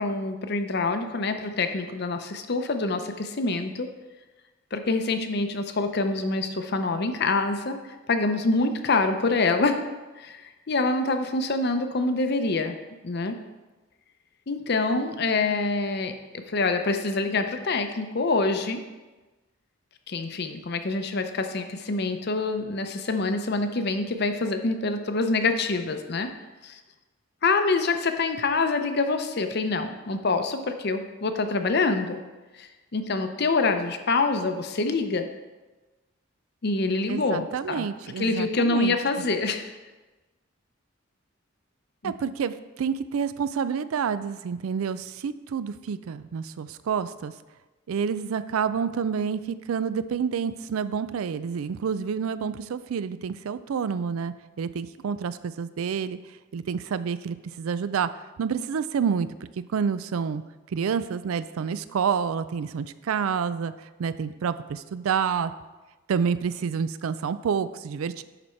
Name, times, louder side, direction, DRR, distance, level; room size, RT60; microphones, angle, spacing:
voice 1, 0.0-3.9 4.7-7.8 8.1-9.9 10.2-12.8 13.0-13.4 14.5-16.1 16.5-18.8 20.1-26.3 26.6-26.8 27.4-32.2 32.5-35.3 36.6-37.9 38.2-39.7 42.0-42.1, left 3 dB, 50° left, 7 dB, 0.6 m, -26 dB
voice 2, 37.1-39.0 42.0-47.3 47.9-56.2 56.5-58.1 58.4-59.3 59.7-60.4 60.7-63.7 64.0-65.5 66.1-68.2, right 6 dB, 80° right, 14 dB, 0.4 m, -28 dB
11.0 x 4.2 x 4.4 m, 1.2 s
head